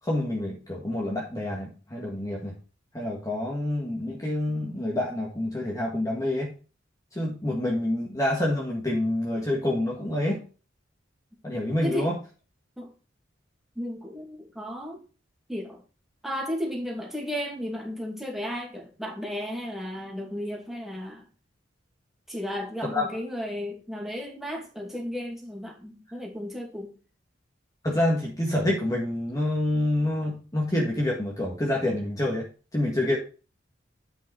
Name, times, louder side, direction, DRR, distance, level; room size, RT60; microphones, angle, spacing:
voice 1, 0.0-2.6 2.9-6.5 7.1-10.4 11.4-12.2 22.8-23.1 27.8-33.2, left 1 dB, 20° left, -2 dB, 1.8 m, -27 dB
voice 2, 13.8-15.0 15.5-15.8 16.2-21.3 22.3-26.9, equal, ahead, -2 dB, 2.5 m, -34 dB
9.2 x 5.3 x 4.7 m, 0.35 s
head